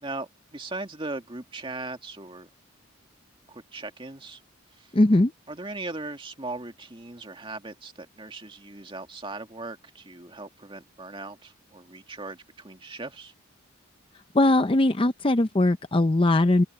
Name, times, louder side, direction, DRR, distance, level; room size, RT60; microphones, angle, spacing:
voice 1, 0.0-2.5 3.5-4.4 4.7-4.9 5.5-13.3, right 2 dB, 25° right, 2.1 m, -38 dB
voice 2, 4.9-5.3 14.3-16.6, left 2 dB, 25° left, 0.6 m, -20 dB
open air
head